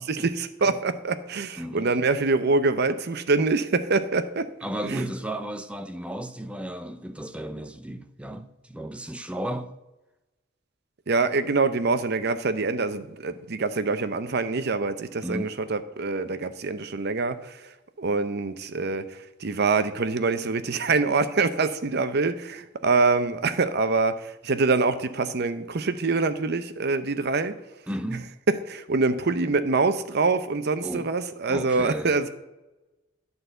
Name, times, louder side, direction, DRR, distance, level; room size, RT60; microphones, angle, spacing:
voice 1, 0.1-4.5 4.8-5.0 11.1-17.6 18.0-27.6 28.5-32.3, right 3 dB, 55° right, 0.7 m, -25 dB
voice 2, 1.6-1.9 4.6-9.7 15.2-15.5 27.9-28.3 30.8-31.1 31.5-32.1, right 1 dB, 5° right, 0.4 m, -34 dB
11.5 x 4.1 x 7.9 m
head